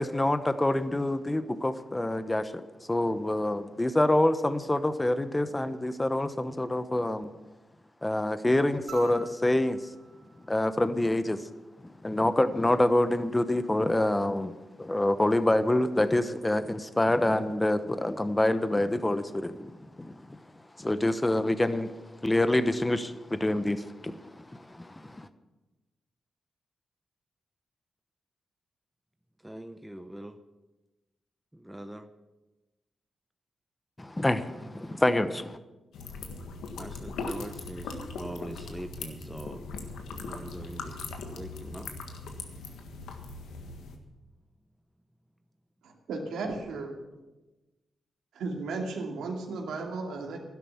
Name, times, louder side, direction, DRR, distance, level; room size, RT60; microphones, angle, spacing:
voice 1, 0.0-2.6 2.9-7.3 8.0-9.8 10.5-11.4 11.8-19.7 20.0-20.1 20.8-21.9 22.2-25.3 34.0-35.6, left 1 dB, 20° left, 12 dB, 1.0 m, -26 dB
sound 1, 8.9-11.4 13.1-13.2, right 4 dB, 60° right, 3.6 m, -48 dB
voice 2, 29.4-30.4 31.5-32.1 36.8-39.6 40.1-41.0 41.3-41.9, right 1 dB, 10° right, 8 dB, 0.9 m, -42 dB
sound 2, 35.9-44.0, left 3 dB, 85° left, 1.6 m, -39 dB
voice 3, 45.8-47.0 48.3-50.4, right 3 dB, 85° right, 1 dB, 2.5 m, -35 dB
12.5 x 11.0 x 7.2 m, 1.1 s
cardioid pair, 55°, 0 cm